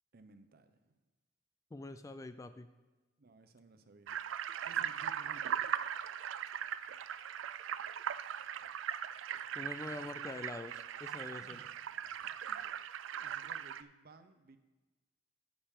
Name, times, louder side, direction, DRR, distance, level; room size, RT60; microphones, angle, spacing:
voice 1, 0.1-1.0 3.2-4.2 4.6-5.4 11.4-11.7 13.2-14.6, right 2 dB, 55° right, 9 dB, 0.7 m, -59 dB
voice 2, 1.7-2.7 9.5-11.6, left 2 dB, 15° left, 10 dB, 0.3 m, -45 dB
sound 1, 4.1-13.8, right 9 dB, 80° right, 0.4 m, -39 dB
9.8 x 8.7 x 3.7 m, 1.2 s
head